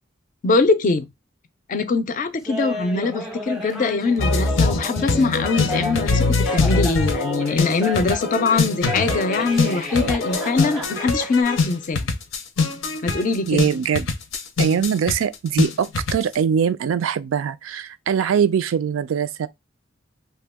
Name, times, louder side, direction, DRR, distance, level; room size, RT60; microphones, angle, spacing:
voice 1, 0.4-1.1 1.7-12.1 13.0-13.6, left 4 dB, 40° left, 0.4 m, -22 dB
Laughter, 2.5-8.4 8.8-11.4, left 1 dB, ahead, 0.6 m, -32 dB
sound 1, 4.2-16.3, left 3 dB, 80° left, 0.6 m, -23 dB
voice 2, 13.5-14.1 14.6-19.5, right 7 dB, 85° right, 0.3 m, -22 dB
2.7 x 2.2 x 3.4 m
head